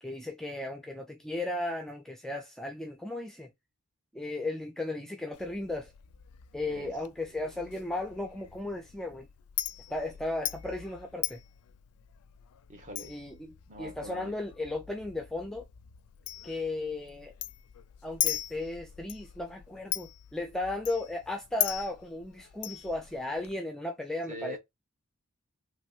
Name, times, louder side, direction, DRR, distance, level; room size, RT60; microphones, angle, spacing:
voice 1, 0.0-3.5 4.1-5.9 6.5-9.3 9.9-11.4 13.1-15.6 16.4-17.3 18.0-24.6, left 2 dB, ahead, 0.4 m, -35 dB
Chink clink, 5.3-23.5, left 13 dB, 75° left, 0.4 m, -40 dB
voice 2, 12.7-13.2 13.7-14.3 24.3-24.6, right 1 dB, 35° right, 1.0 m, -43 dB
3.1 x 2.9 x 2.3 m
head